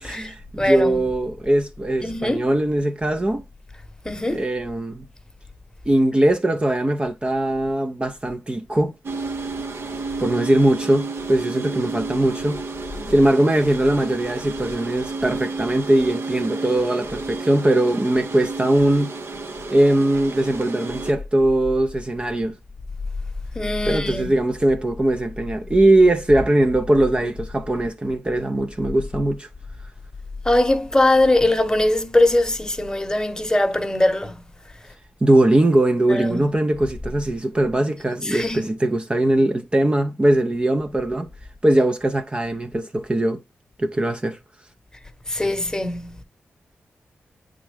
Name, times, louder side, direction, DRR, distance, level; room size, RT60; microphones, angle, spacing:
voice 1, 0.0-3.4 4.3-5.1 5.9-8.9 10.2-12.6 13.1-19.1 19.7-22.6 23.8-29.5 35.2-41.3 41.6-43.4 43.8-44.4, right 1 dB, 25° right, 0.6 m, -20 dB
voice 2, 0.6-1.0 2.0-2.4 4.0-4.4 23.6-24.3 30.5-34.4 36.1-36.5 38.3-38.6 45.3-46.2, left 1 dB, 15° left, 1.0 m, -21 dB
sound 1, 9.0-21.1, right 3 dB, 65° right, 0.9 m, -31 dB
8.6 x 3.7 x 3.3 m
cardioid pair, 60°, 4 cm